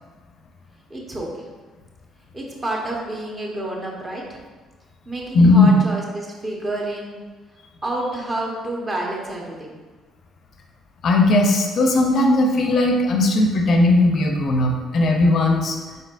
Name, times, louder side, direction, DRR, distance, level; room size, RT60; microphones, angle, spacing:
voice 1, 0.9-1.5 2.3-4.4 5.1-7.2 7.8-9.8, right 1 dB, 30° right, -2 dB, 1.1 m, -29 dB
voice 2, 5.3-5.7 11.0-15.8, left 2 dB, 60° left, 3 dB, 0.5 m, -17 dB
4.0 x 3.7 x 2.5 m, 1.4 s
hypercardioid pair, 55°, 0 cm